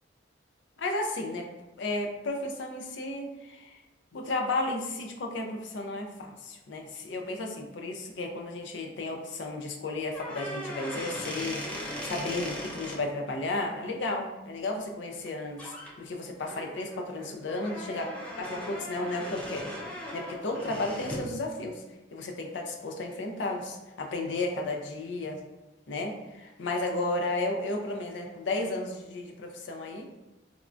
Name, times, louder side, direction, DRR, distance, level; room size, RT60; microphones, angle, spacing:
voice 1, 0.8-1.5 1.8-3.5 4.1-18.1 18.4-19.7 20.1-21.8 22.1-25.4 25.9-30.1, left 2 dB, 70° left, 2 dB, 0.5 m, -33 dB
sound 1, 10.1-13.0 15.1-15.3 15.6-15.9 16.4-21.3, equal, 5° left, 0.5 m, -39 dB
3.5 x 2.1 x 2.4 m, 1.1 s
head